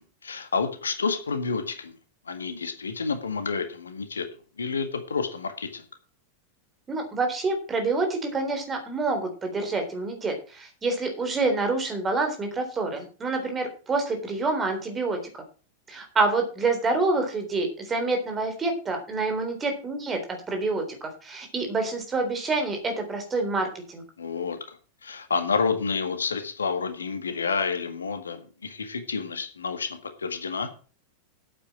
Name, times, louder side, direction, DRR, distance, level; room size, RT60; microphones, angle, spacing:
voice 1, 0.0-1.9 2.3-4.3 4.6-5.8 24.2-24.6 25.0-30.7, left 5 dB, 75° left, 8 dB, 1.7 m, -29 dB
voice 2, 6.9-15.2 15.9-24.0, right 3 dB, 20° right, 5 dB, 3.6 m, -27 dB
8.8 x 8.4 x 6.2 m, 0.37 s
figure-of-eight pair, 90°, 0 cm